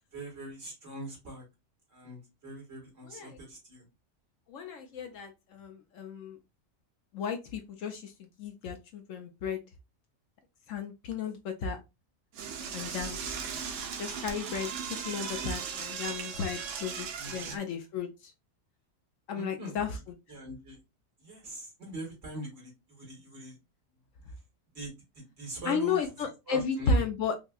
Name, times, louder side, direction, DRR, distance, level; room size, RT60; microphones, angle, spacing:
voice 1, 0.1-1.5 1.9-3.9 17.2-17.6 19.3-19.9 20.3-20.8 21.2-23.6 24.7-26.0 26.5-27.0, right 1 dB, 55° right, 0 dB, 2.1 m, -42 dB
voice 2, 3.1-3.4 4.5-6.4 7.1-8.1 8.4-9.6 10.7-11.8 12.7-13.2 14.0-18.3 19.3-20.0 25.7-27.3, left 5 dB, 70° left, 5 dB, 1.0 m, -33 dB
Door / Toilet flush, 12.3-17.6, right 6 dB, 70° right, 1.0 m, -37 dB
5.2 x 2.2 x 2.3 m, 0.24 s
omnidirectional pair, 1.4 m